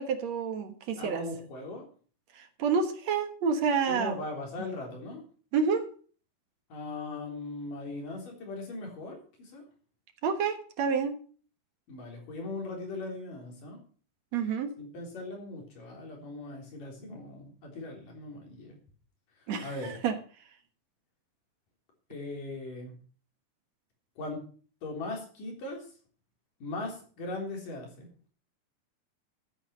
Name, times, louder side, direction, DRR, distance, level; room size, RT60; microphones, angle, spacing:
voice 1, 0.0-1.2 2.3-4.2 4.6-4.7 5.5-5.9 10.2-11.2 14.3-14.7 19.5-20.2, right 6 dB, 60° right, 2.4 m, -29 dB
voice 2, 1.0-1.9 3.9-5.2 6.7-9.6 11.9-13.8 14.8-18.8 19.6-20.0 22.1-23.0 24.2-24.4 24.8-25.9 26.6-28.1, left 2 dB, 90° left, 5.4 m, -39 dB
13.5 x 8.8 x 6.4 m
omnidirectional pair, 3.7 m